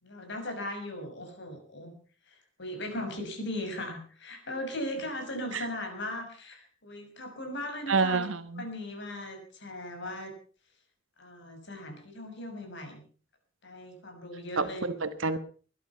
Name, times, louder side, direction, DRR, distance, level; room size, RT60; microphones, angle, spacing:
voice 1, 0.0-1.9 2.6-10.3 11.2-13.0 13.6-14.9, left 1 dB, 60° left, 5 dB, 6.4 m, -38 dB
voice 2, 7.9-8.6 14.6-15.4, right 4 dB, 75° right, 10 dB, 1.4 m, -28 dB
20.5 x 12.0 x 5.7 m, 0.43 s
head